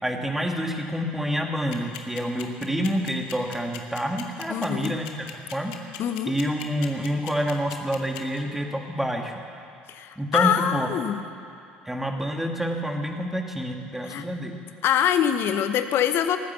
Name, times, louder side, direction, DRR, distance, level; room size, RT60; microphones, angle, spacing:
voice 1, 0.0-5.1 5.5-5.7 6.3-9.3 10.2-10.9 11.9-14.6, equal, 5° right, 2 dB, 2.1 m, -28 dB
sound 1, 1.7-8.4, left 14 dB, 75° left, 1.1 m, -38 dB
voice 2, 4.5-5.0 6.0-6.3 9.9-11.2 14.0-14.2 14.8-16.4, left 9 dB, 55° left, 9 dB, 0.9 m, -24 dB
18.5 x 9.6 x 6.9 m, 2.6 s
hypercardioid pair, 65°, 5 cm